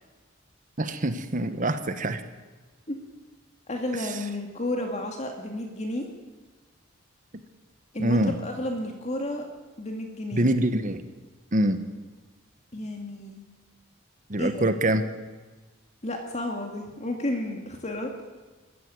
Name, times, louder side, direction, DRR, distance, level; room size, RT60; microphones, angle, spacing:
voice 1, 0.8-2.2 8.0-8.3 10.3-11.0 11.5-11.8 14.3-15.0, right 1 dB, 40° right, 9 dB, 1.2 m, -24 dB
voice 2, 3.7-6.1 7.9-9.4 9.8-10.5 12.7-13.4 14.4-14.7 16.0-18.1, left 1 dB, 35° left, 3 dB, 2.2 m, -32 dB
21.5 x 14.5 x 9.5 m, 1.3 s
head